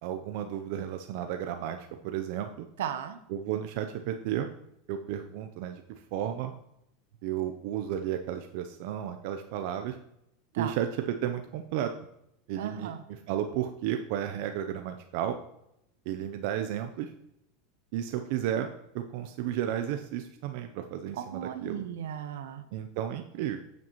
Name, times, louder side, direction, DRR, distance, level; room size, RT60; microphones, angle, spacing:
voice 1, 0.0-2.7 3.3-4.5 4.9-5.8 6.1-6.5 7.2-10.0 10.6-11.9 12.5-12.9 13.3-15.4 16.1-17.1 17.9-18.7 18.9-21.8 22.7-23.6, right 10 dB, 65° right, 6 dB, 0.7 m, -33 dB
voice 2, 2.8-3.2 10.5-10.8 12.6-13.0 21.1-22.6, right 9 dB, 85° right, 10 dB, 0.9 m, -36 dB
9.6 x 7.7 x 3.1 m, 0.78 s
supercardioid pair, 120°, 0 cm